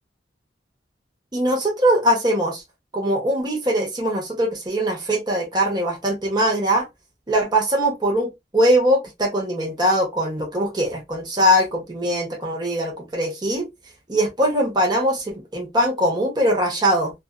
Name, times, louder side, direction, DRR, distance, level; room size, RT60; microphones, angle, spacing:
voice 1, 1.3-2.6 2.9-6.9 7.3-13.7 14.1-17.1, equal, 25° right, 0.9 m, -21 dB
2.6 x 2.3 x 2.3 m
head